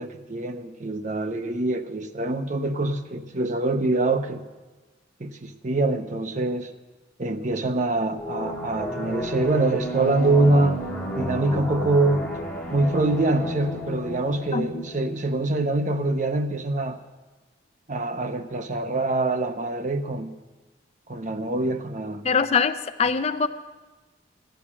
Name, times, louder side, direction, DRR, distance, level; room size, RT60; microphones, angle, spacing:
voice 1, 0.0-4.4 5.2-6.7 7.2-10.8 11.2-12.3 12.7-17.0 17.9-20.3 21.1-22.2, right 2 dB, 40° right, 0.8 m, -24 dB
sound 1, 8.2-15.6, equal, 10° left, 1.6 m, -32 dB
voice 2, 14.5-14.8 22.2-23.5, left 5 dB, 35° left, 0.5 m, -23 dB
13.5 x 9.2 x 8.5 m
head